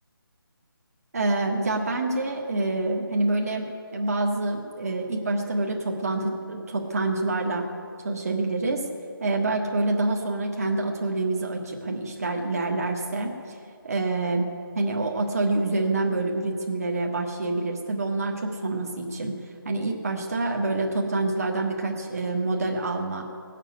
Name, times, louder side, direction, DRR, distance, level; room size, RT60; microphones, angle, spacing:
voice 1, 1.1-7.6 8.0-8.8 9.2-13.6 13.8-14.5 14.7-19.3 19.6-23.2, right 2 dB, 40° right, 1 dB, 1.5 m, -27 dB
18.5 x 7.5 x 9.1 m, 2.4 s
figure-of-eight pair, 175°, 12 cm